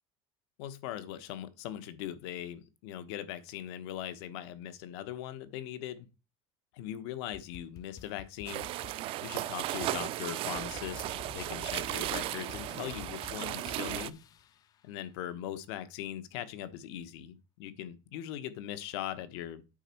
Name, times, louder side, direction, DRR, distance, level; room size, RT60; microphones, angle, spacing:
voice 1, 0.6-6.1 6.7-8.7 9.2-11.1 11.3-14.2 14.8-19.6, left 11 dB, 85° left, 1.2 m, -40 dB
sound 1, 7.3-14.7, left 9 dB, 30° left, 0.4 m, -50 dB
sound 2, 8.5-14.1, right 15 dB, 45° right, 0.5 m, -36 dB
9.0 x 6.3 x 4.5 m
cardioid pair, 165°, 13 cm